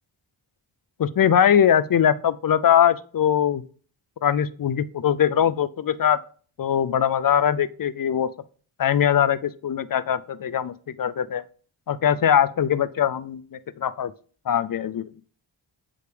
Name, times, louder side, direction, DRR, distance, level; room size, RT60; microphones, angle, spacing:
voice 1, 1.0-3.6 4.2-6.2 6.6-8.3 8.8-11.4 11.9-14.1 14.5-15.1, left 9 dB, 45° left, 16 dB, 0.5 m, -21 dB
7.8 x 5.0 x 3.3 m, 0.44 s
cardioid pair, 50°, 48 cm